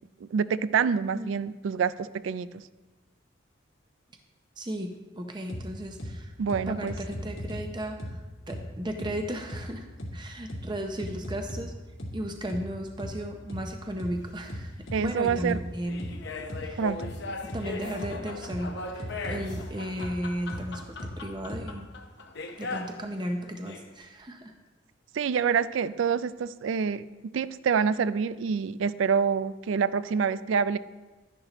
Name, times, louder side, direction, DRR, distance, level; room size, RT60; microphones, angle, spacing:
voice 1, 0.2-2.6 6.4-7.0 14.9-15.6 16.8-17.1 25.1-27.1 27.3-30.8, right 6 dB, 70° right, 16 dB, 0.3 m, -27 dB
voice 2, 4.6-6.3 6.7-8.2 8.5-9.9 10.1-11.7 12.1-16.1 16.6-16.8 17.5-21.9 22.6-24.5, right 1 dB, 20° right, 4 dB, 0.6 m, -35 dB
sound 1, 5.5-5.6 6.0-6.1 6.5-7.6 8.0-8.1 8.5-8.6 9.0-9.1 9.5-9.6 10.0-10.1 10.5-10.6 11.0-11.6 12.0-12.1 12.5-12.6 13.0-13.1 13.5-13.6 14.0-14.1 14.5-15.6 16.0-16.1 16.5-16.6 17.0-17.1 17.5-17.6 18.0-18.1 18.5-18.6 19.0-19.6 20.0-20.1 20.5-20.6 21.0-21.1 21.5-21.6, equal, 75° left, 2.0 m, -36 dB
sound 2, 14.2-14.3 15.0-23.0 23.5-23.9, left 3 dB, 60° left, 0.8 m, -39 dB
11.5 x 10.5 x 3.0 m, 1.2 s
head